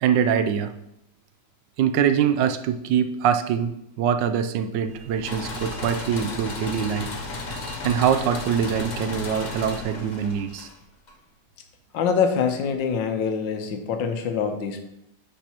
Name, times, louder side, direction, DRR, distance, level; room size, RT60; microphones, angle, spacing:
voice 1, 0.0-0.7 1.8-3.7 4.0-7.1 7.8-10.7, right 8 dB, 80° right, 9 dB, 1.2 m, -23 dB
sound 1, 4.8-10.7, right 4 dB, 60° right, 0.7 m, -45 dB
sound 2, 5.2-11.1, left 3 dB, 60° left, 0.4 m, -34 dB
voice 2, 11.9-14.8, left 6 dB, 85° left, 6 dB, 1.6 m, -24 dB
10.5 x 5.3 x 2.9 m, 0.81 s
omnidirectional pair, 2.0 m